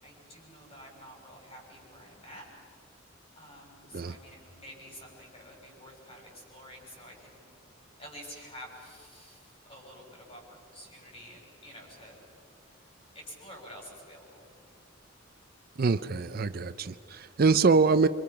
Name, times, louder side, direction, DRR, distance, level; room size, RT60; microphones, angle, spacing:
voice 1, 0.0-2.5 2.9-3.1 3.3-7.4 8.0-12.2 12.7-12.8 13.1-14.5, equal, 30° left, -1 dB, 6.3 m, -49 dB
voice 2, 15.8-18.1, right 4 dB, 50° right, 13 dB, 0.5 m, -24 dB
27.5 x 25.0 x 5.8 m, 2.4 s
head